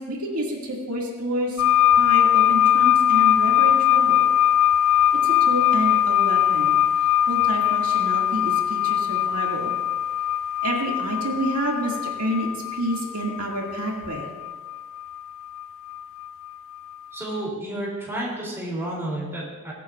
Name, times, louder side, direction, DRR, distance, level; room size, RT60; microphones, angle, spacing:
voice 1, 0.1-1.7 2.0-4.3 5.2-6.8 7.3-9.7 10.6-14.3, right 1 dB, 80° right, -2 dB, 2.1 m, -29 dB
sound 1, 1.6-16.5 17.3-17.4, left 10 dB, 60° left, 0.3 m, -21 dB
voice 2, 17.1-19.7, right 1 dB, 10° right, -5 dB, 2.9 m, -31 dB
21.0 x 8.3 x 2.4 m, 1.3 s
head